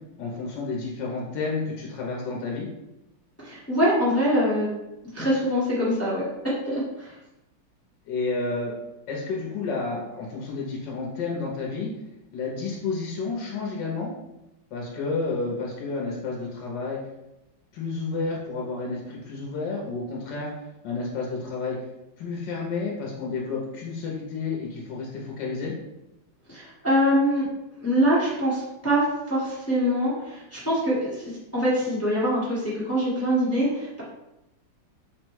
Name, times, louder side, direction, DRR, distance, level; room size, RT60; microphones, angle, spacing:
voice 1, 0.2-2.7 8.1-8.8 9.1-11.9 12.3-14.1 14.7-17.0 17.7-20.5 20.8-21.8 22.2-25.7, left 4 dB, 70° left, -2 dB, 1.2 m, -30 dB
voice 2, 3.4-4.7 5.1-7.1 26.5-27.5 27.8-34.0, equal, 10° left, -8 dB, 0.7 m, -24 dB
4.2 x 2.2 x 4.5 m, 0.92 s
omnidirectional pair, 2.3 m